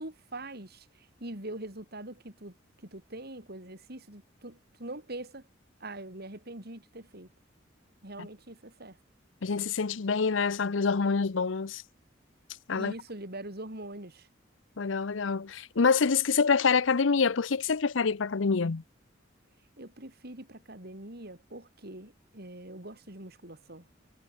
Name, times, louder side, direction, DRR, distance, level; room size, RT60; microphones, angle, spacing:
voice 1, 0.0-2.5 2.8-5.4 5.8-7.3 8.0-9.0 12.8-14.3 19.8-23.9, right 1 dB, 55° right, 5.7 m, -43 dB
voice 2, 9.4-11.8 12.7-12.9 14.8-18.8, left 5 dB, 85° left, 0.7 m, -26 dB
head